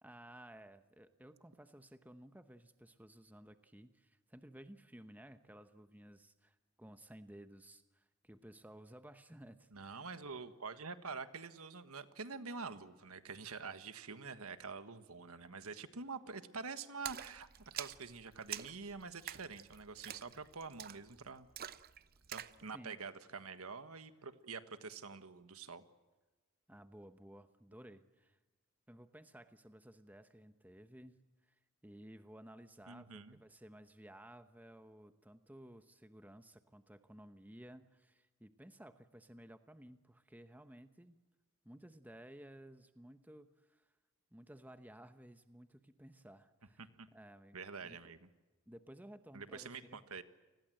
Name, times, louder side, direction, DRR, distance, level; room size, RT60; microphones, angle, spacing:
voice 1, 0.0-10.1 22.7-23.0 26.7-28.4 28.9-41.2 41.6-43.9 44.3-46.8 47.1-48.0 48.7-50.0, right 1 dB, 5° right, 9 dB, 1.0 m, -56 dB
voice 2, 9.7-17.5 17.7-21.5 22.3-25.8 32.9-33.4 46.8-47.1 47.5-48.3 49.3-50.2, right 4 dB, 80° right, 10 dB, 1.5 m, -47 dB
Splash splatter, 17.0-22.6, right 10 dB, 45° right, 0.7 m, -47 dB
29.5 x 20.5 x 7.8 m, 1.2 s
head